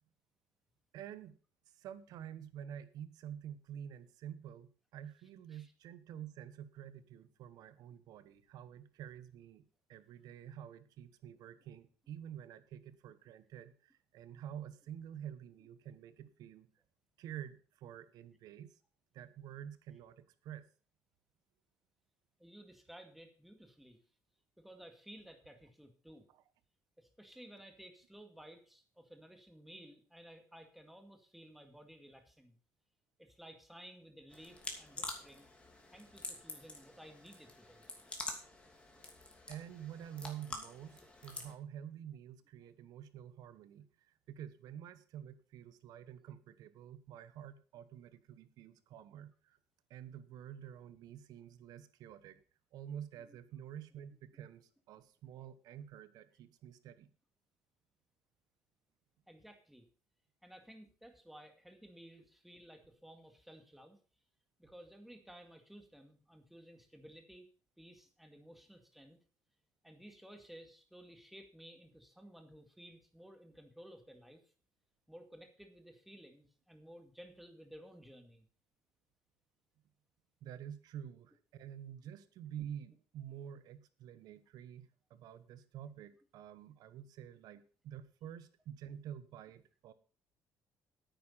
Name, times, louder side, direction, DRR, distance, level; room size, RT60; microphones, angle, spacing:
voice 1, 0.9-1.3 1.8-9.6 9.9-16.7 17.2-18.8 19.1-20.6 26.3-26.4 39.5-49.6 49.9-52.4 52.7-57.1 80.4-89.9, right 9 dB, 75° right, 13 dB, 1.2 m, -49 dB
voice 2, 22.4-24.0 24.6-26.3 27.0-32.6 33.2-35.5 35.9-37.9 53.3-53.4 59.3-59.9 60.4-64.0 64.6-67.5 67.8-69.2 69.8-74.4 75.1-78.5, equal, ahead, 5 dB, 2.2 m, -56 dB
sound 1, 34.3-41.5, left 2 dB, 15° left, 2.7 m, -47 dB
9.5 x 9.2 x 5.7 m, 0.38 s
cardioid pair, 125°, 7 cm